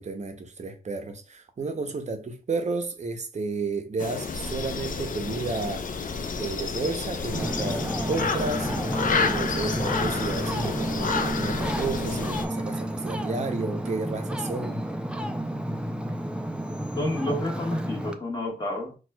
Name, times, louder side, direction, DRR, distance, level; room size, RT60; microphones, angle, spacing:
voice 1, 0.0-5.9 6.4-8.7 9.2-14.8, right 3 dB, 45° right, 0.6 m, -32 dB
sound 1, 4.0-12.5, left 4 dB, 55° left, 0.4 m, -30 dB
Ocean, 7.3-18.1, right 1 dB, 5° right, 0.3 m, -31 dB
voice 2, 17.0-19.0, left 1 dB, 25° left, 1.2 m, -29 dB
4.2 x 2.3 x 2.2 m
cardioid pair, 80°, 16 cm